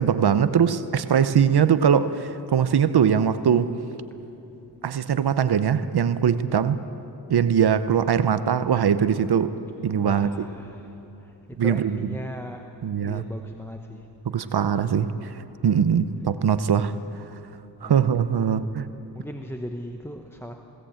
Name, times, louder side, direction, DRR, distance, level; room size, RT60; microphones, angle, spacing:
voice 1, 0.0-3.7 4.8-6.8 7.3-9.5 9.8-10.5 11.6-12.0 12.8-13.2 14.3-15.3 15.6-16.9 17.8-18.9, right 8 dB, 65° right, 0.9 m, -21 dB
voice 2, 10.0-12.6 13.0-14.1 14.4-14.7 17.8-18.1 18.4-18.6 19.1-20.5, equal, 5° left, 1.0 m, -38 dB
21.5 x 17.5 x 8.9 m
wide cardioid pair, 130°, 41 cm